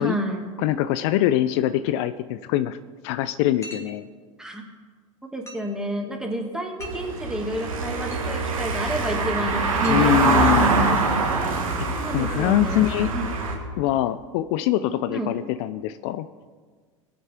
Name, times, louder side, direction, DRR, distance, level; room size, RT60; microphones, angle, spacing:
voice 1, 0.0-0.5 4.4-4.6 5.3-11.2 11.9-13.3 15.1-15.3, right 1 dB, 5° right, 1 dB, 2.4 m, -30 dB
voice 2, 0.6-2.8 3.0-4.0 9.9-10.8 11.9-13.1 13.8-16.3, left 13 dB, 60° left, 13 dB, 0.5 m, -23 dB
sound 1, 3.6-4.0 5.5-5.7 6.8-7.1 7.7-7.8 8.1-8.4 9.8-10.6, equal, 15° left, 2.6 m, -41 dB
Car passing by / Engine, 6.8-13.6, right 3 dB, 85° right, 1.8 m, -24 dB
20.5 x 8.7 x 3.7 m, 1.5 s
hypercardioid pair, 85°, 17 cm